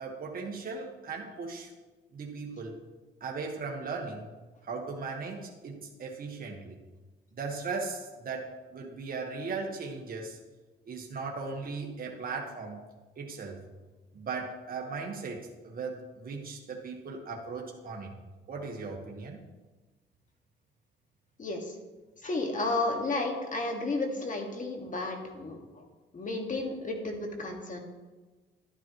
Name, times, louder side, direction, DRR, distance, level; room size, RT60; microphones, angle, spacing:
voice 1, 0.0-1.7 2.1-2.8 3.2-4.3 4.6-6.8 7.3-10.4 10.9-12.8 13.2-13.6 14.1-18.1 18.5-19.4, right 4 dB, 45° right, -1 dB, 1.6 m, -38 dB
voice 2, 21.4-21.8 22.2-25.8 26.1-27.8, left 2 dB, 40° left, 2 dB, 2.0 m, -32 dB
11.5 x 10.5 x 3.2 m, 1.2 s
cardioid pair, 90°, 20 cm